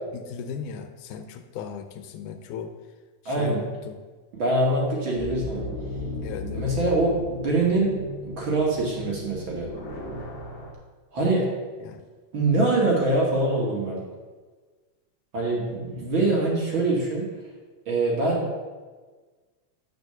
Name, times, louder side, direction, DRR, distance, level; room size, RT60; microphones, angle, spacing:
voice 1, 0.1-2.7 3.2-4.0 6.2-6.7 11.8-12.0, left 6 dB, 80° left, 7 dB, 2.1 m, -37 dB
voice 2, 3.3-3.6 4.3-5.7 6.4-7.9 8.2-9.7 11.1-11.5 12.3-14.0 15.3-17.3 17.9-18.6, right 2 dB, 45° right, -3 dB, 2.2 m, -24 dB
sound 1, 5.2-10.7, left 2 dB, 45° left, 1.9 m, -35 dB
9.3 x 5.3 x 6.7 m, 1.4 s
omnidirectional pair, 3.6 m